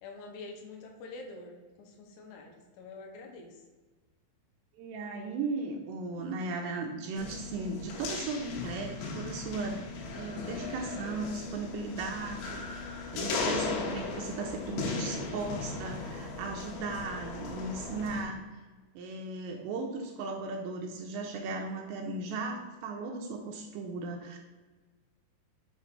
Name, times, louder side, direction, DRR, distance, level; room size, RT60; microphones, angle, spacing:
voice 1, 0.0-3.6, left 3 dB, 75° left, 1 dB, 2.9 m, -46 dB
voice 2, 4.8-9.8 10.2-18.4 19.0-24.4, right 3 dB, 85° right, 2 dB, 2.6 m, -37 dB
je racketballcourt, 7.2-18.2, left 4 dB, 90° left, 3.4 m, -37 dB
7.7 x 2.6 x 5.8 m, 1.3 s
omnidirectional pair, 5.3 m